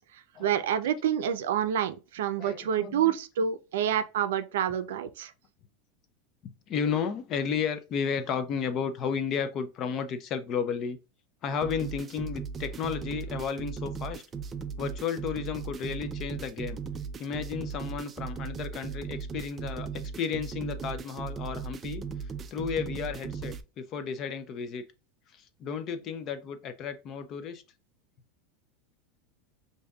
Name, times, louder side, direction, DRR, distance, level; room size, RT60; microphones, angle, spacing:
voice 1, 0.4-5.3, right 9 dB, 85° right, 0.5 m, -28 dB
voice 2, 2.4-3.1 3.8-3.9 6.7-11.0 11.4-14.2 14.8-16.8 17.2-22.0 22.5-24.8 25.3-27.6, left 6 dB, 35° left, 0.5 m, -33 dB
sound 1, 11.6-23.6, right 6 dB, 20° right, 0.3 m, -37 dB
5.0 x 2.6 x 2.3 m
supercardioid pair, 145°, 0 cm